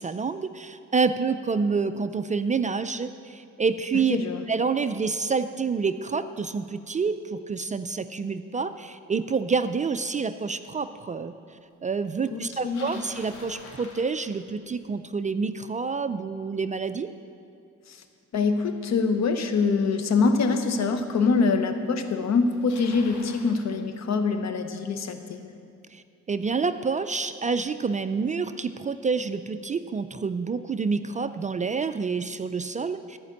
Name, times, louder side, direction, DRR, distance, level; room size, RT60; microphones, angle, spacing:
voice 1, 0.0-4.2 4.5-11.3 11.8-17.1 25.9-33.2, right 5 dB, 25° right, 11 dB, 0.4 m, -28 dB
voice 2, 4.1-4.4 12.3-13.0 17.9-18.0 18.3-25.5, left 4 dB, 60° left, 8 dB, 1.0 m, -24 dB
Bicycle, 12.4-14.7 19.8-19.9 20.7-20.8 21.8-21.9 22.1-23.6, left 3 dB, 85° left, 1.8 m, -46 dB
13.5 x 5.2 x 8.2 m, 2.4 s
cardioid pair, 90°, 30 cm